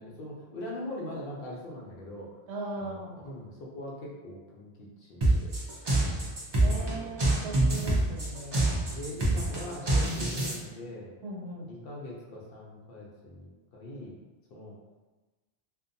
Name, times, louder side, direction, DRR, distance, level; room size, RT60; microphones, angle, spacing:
voice 1, 0.0-2.3 2.8-4.7 5.0-5.5 5.9-6.2 6.8-7.1 7.4-7.6 8.9-11.1 11.6-14.2 14.5-14.7, left 1 dB, 60° left, -4 dB, 0.7 m, -42 dB
voice 2, 2.5-3.2 6.6-8.8 11.2-11.7, right 2 dB, 75° right, -2 dB, 0.9 m, -39 dB
sound 1, 5.2-10.5, right 2 dB, 40° right, 0.3 m, -26 dB
2.6 x 2.2 x 2.6 m, 1.2 s
omnidirectional pair, 1.2 m